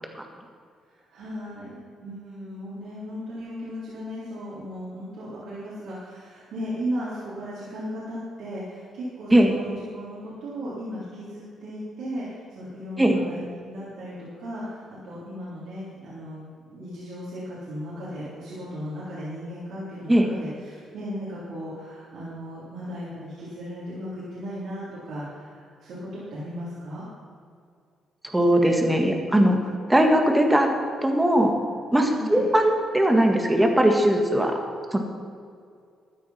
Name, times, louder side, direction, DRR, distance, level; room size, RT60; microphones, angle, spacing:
voice 1, 0.9-27.0 32.1-32.5, equal, 75° right, -9 dB, 3.6 m, -36 dB
voice 2, 28.3-29.6 29.9-30.7 31.0-31.5 31.9-34.6 34.9-35.0, right 1 dB, 10° right, 3 dB, 1.9 m, -19 dB
13.0 x 9.3 x 5.8 m, 2.3 s
cardioid pair, 90°, 0 cm